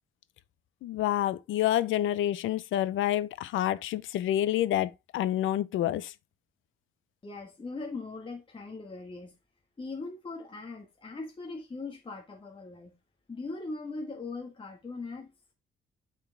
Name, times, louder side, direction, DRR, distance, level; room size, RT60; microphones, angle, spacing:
voice 1, 0.8-6.1, left 12 dB, 80° left, 0.6 m, -28 dB
voice 2, 7.2-9.3 9.8-12.9 13.3-15.3, left 3 dB, 25° left, 1.4 m, -40 dB
8.9 x 4.5 x 3.3 m
cardioid pair, 90°, 20 cm